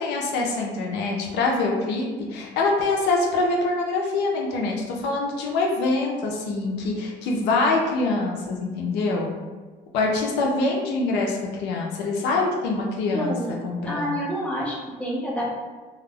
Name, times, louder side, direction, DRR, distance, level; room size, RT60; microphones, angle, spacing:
voice 1, 0.0-9.3 9.9-13.3 13.6-14.2, left 3 dB, 90° left, -1 dB, 0.5 m, -24 dB
voice 2, 13.1-13.6 13.8-15.4, equal, 5° left, -5 dB, 0.7 m, -28 dB
2.2 x 2.0 x 3.4 m, 1.4 s
cardioid pair, 110°, 17 cm